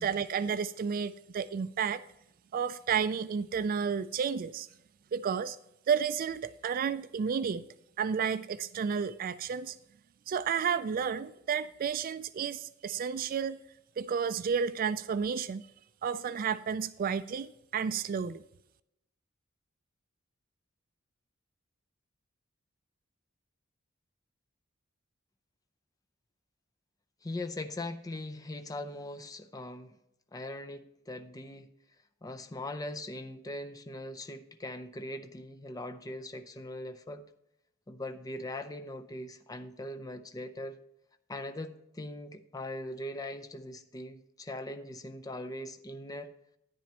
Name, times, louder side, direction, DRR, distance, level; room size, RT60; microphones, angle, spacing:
voice 1, 0.0-2.0 2.5-4.7 5.1-5.6 5.9-7.7 8.0-9.8 10.3-13.6 14.0-15.6 16.0-18.4, right 6 dB, 45° right, 0.3 m, -31 dB
voice 2, 27.2-30.0 30.3-31.7 32.2-37.2 37.9-40.8 41.3-46.3, left 1 dB, 20° left, 0.5 m, -40 dB
10.5 x 10.0 x 2.9 m
head